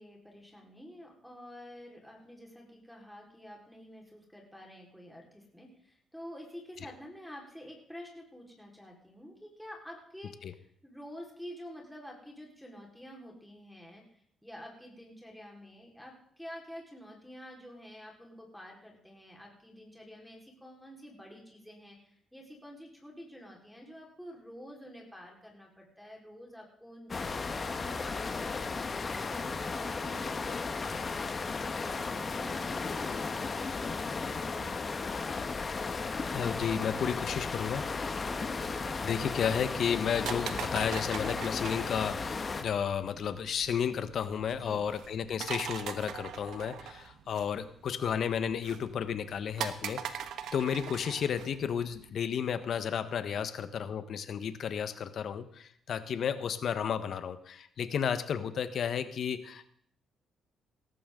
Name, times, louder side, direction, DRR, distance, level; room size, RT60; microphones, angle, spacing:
voice 1, 0.0-34.8 44.6-44.8, equal, ahead, -2 dB, 4.6 m, -49 dB
sound 1, 27.1-42.6, left 4 dB, 35° left, 1.4 m, -35 dB
voice 2, 36.3-37.8 39.0-50.2 50.5-59.7, left 7 dB, 60° left, 11 dB, 1.3 m, -32 dB
sound 2, 38.4-52.1, right 8 dB, 75° right, 1.3 m, -43 dB
18.0 x 14.0 x 3.9 m, 0.62 s
cardioid pair, 90°, 0 cm